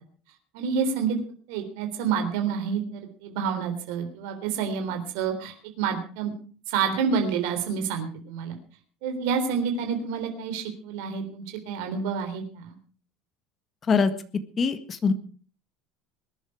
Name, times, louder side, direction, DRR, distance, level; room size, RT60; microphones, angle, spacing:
voice 1, 0.5-1.2 1.5-6.3 6.7-8.6 9.0-12.8, right 6 dB, 80° right, 5 dB, 3.6 m, -28 dB
voice 2, 14.6-15.1, left 5 dB, 25° left, 10 dB, 1.7 m, -22 dB
21.0 x 11.0 x 4.9 m, 0.41 s
cardioid pair, 155°, 0 cm